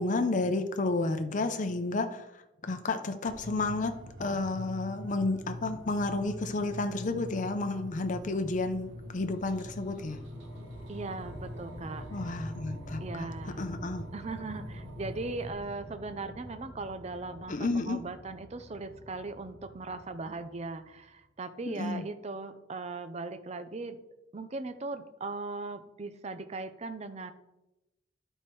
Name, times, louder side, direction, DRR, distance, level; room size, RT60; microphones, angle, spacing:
voice 1, 0.0-3.9 4.2-10.2 12.1-13.3 13.6-14.1 17.5-18.0 21.7-22.1, left 2 dB, 40° left, 7 dB, 0.6 m, -31 dB
sound 1, 3.3-15.5, equal, 80° right, 1.4 m, -44 dB
sound 2, 8.6-21.1, equal, 50° right, 3.0 m, -48 dB
voice 2, 10.9-12.3 13.0-13.7 14.1-24.0 24.3-27.3, right 3 dB, 35° right, 10 dB, 0.5 m, -39 dB
11.5 x 4.5 x 4.5 m, 0.93 s
head